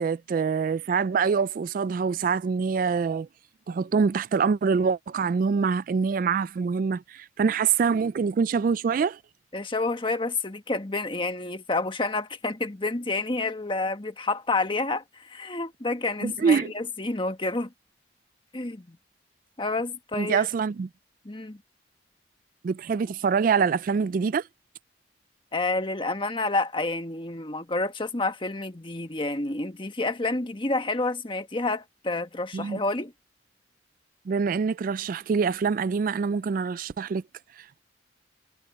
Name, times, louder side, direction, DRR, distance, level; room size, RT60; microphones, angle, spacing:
voice 1, 0.0-3.3 3.7-9.2 16.2-16.7 20.1-20.9 22.6-24.4 32.5-32.8 34.3-37.2 37.6-37.8, right 5 dB, 50° right, 0.3 m, -25 dB
voice 2, 9.5-17.7 18.5-19.0 19.6-20.5 21.2-21.6 25.5-33.1, left 2 dB, 30° left, 1.4 m, -29 dB
head